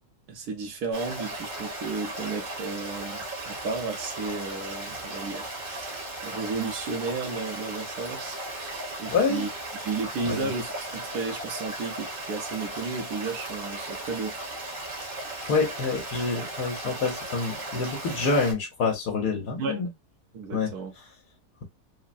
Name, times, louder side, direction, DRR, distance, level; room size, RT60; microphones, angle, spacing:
voice 1, 0.3-14.3 19.6-19.9 20.3-20.9, right 4 dB, 75° right, 1.4 m, -33 dB
Stream, 0.9-18.5, right 1 dB, 40° right, 1.1 m, -36 dB
voice 2, 9.1-9.4 10.2-10.5 15.5-19.9 20.5-20.7, left 4 dB, 75° left, 1.4 m, -27 dB
3.7 x 2.1 x 2.4 m
omnidirectional pair, 1.7 m